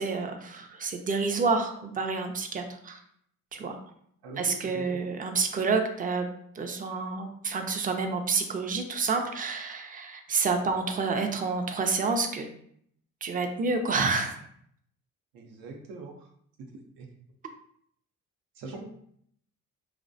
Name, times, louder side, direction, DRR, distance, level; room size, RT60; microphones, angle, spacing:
voice 1, 0.0-3.0 3.5-3.8 4.4-6.3 6.6-12.5 13.2-14.4, right 4 dB, 25° right, 6 dB, 0.4 m, -29 dB
voice 2, 4.2-5.0 15.3-16.3 17.0-17.1 18.5-18.9, right 3 dB, 80° right, 1 dB, 0.6 m, -42 dB
2.3 x 2.0 x 2.6 m, 0.67 s
cardioid pair, 80°, 34 cm